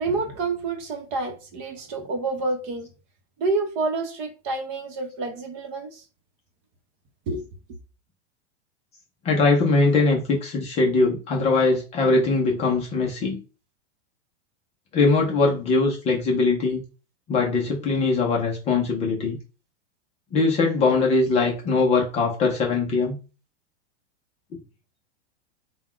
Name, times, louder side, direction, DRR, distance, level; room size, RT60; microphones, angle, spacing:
voice 1, 0.0-2.9 3.4-6.0 7.3-7.4, right 3 dB, 35° right, 0.9 m, -28 dB
voice 2, 9.2-13.4 14.9-16.8 17.3-19.4 20.3-23.2, left 3 dB, 20° left, 0.5 m, -21 dB
3.9 x 2.2 x 4.4 m
supercardioid pair, 160°, 35 cm